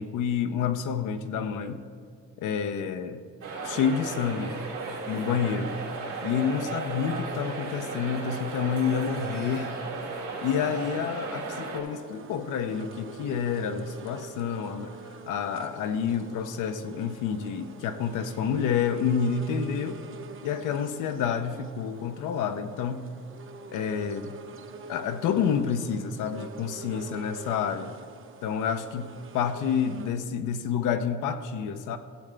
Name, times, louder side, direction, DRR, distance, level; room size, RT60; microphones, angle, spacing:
voice 1, 0.0-1.9 2.4-3.2 3.6-4.6 5.1-5.7 6.2-9.7 10.1-15.0 15.3-20.0 20.4-23.1 23.7-24.4 24.9-27.9 28.4-32.0, left 7 dB, 85° left, 9 dB, 0.7 m, -29 dB
sound 1, 3.4-11.8, right 3 dB, 85° right, 2.4 m, -35 dB
sound 2, 11.8-30.1, right 4 dB, 45° right, 0.7 m, -45 dB
15.5 x 7.4 x 3.4 m, 2.1 s
cardioid pair, 90°, 30 cm